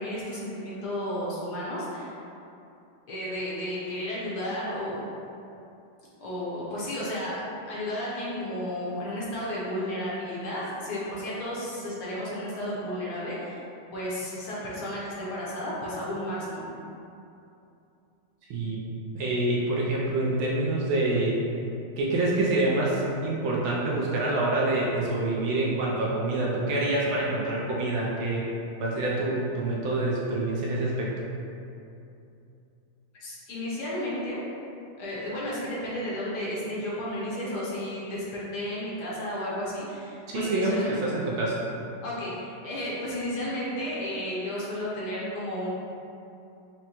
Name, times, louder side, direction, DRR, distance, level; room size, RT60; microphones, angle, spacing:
voice 1, 0.0-2.1 3.1-5.0 6.2-7.4 7.6-13.6 13.9-16.6 33.2-34.4 35.0-40.9 42.0-45.7, left 1 dB, 60° left, -7 dB, 1.2 m, -33 dB
voice 2, 18.5-18.8 19.1-21.3 22.0-28.5 28.8-31.1 40.3-41.6, right 2 dB, 75° right, -4 dB, 1.3 m, -26 dB
6.1 x 2.1 x 2.9 m, 2.7 s
omnidirectional pair, 2.4 m